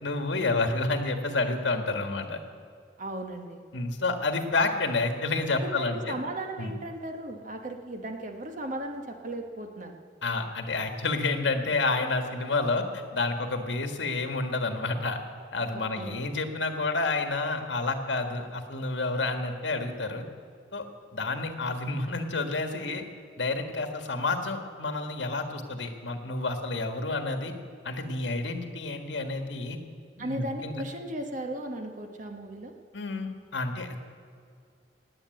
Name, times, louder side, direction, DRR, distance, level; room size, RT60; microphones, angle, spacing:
voice 1, 0.0-2.4 3.7-6.2 6.6-6.7 10.2-15.2 15.5-20.2 20.7-20.8 21.1-23.0 23.4-27.5 27.8-29.8 30.2-30.8 32.9-34.0, left 3 dB, 75° left, 6 dB, 1.7 m, -29 dB
voice 2, 3.0-3.6 5.6-10.0 15.7-16.2 30.2-32.7, right 1 dB, 45° right, 4 dB, 1.4 m, -36 dB
19.0 x 8.9 x 7.8 m, 2.2 s
head